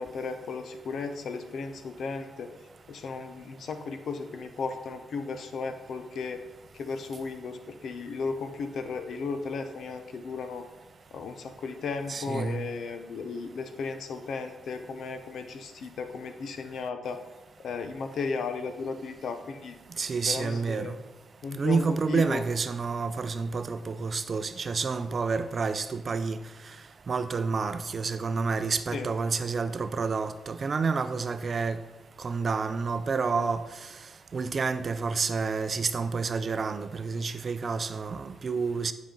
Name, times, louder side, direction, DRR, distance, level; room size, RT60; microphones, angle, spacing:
voice 1, 0.0-2.5 2.9-6.4 6.7-10.7 11.1-17.2 17.6-20.9 21.4-22.5 28.9-29.1, left 4 dB, 70° left, 8 dB, 0.7 m, -35 dB
voice 2, 12.1-12.6 20.0-21.0 21.6-26.4 27.1-31.8 32.2-33.6 34.3-38.9, right 4 dB, 45° right, 11 dB, 0.4 m, -29 dB
9.4 x 5.1 x 3.8 m, 1.1 s
cardioid pair, 95°, 0 cm